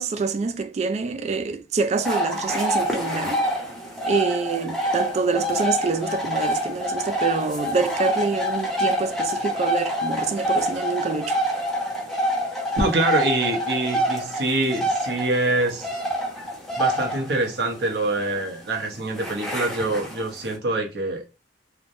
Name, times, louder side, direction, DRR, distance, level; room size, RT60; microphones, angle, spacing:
voice 1, 0.0-3.4 4.1-11.4, right 4 dB, 35° right, 0.3 m, -26 dB
sound 1, 2.0-20.5, equal, ahead, 0.6 m, -27 dB
voice 2, 12.8-15.9 16.8-21.2, right 2 dB, 60° right, 0.8 m, -25 dB
3.2 x 2.0 x 2.5 m
head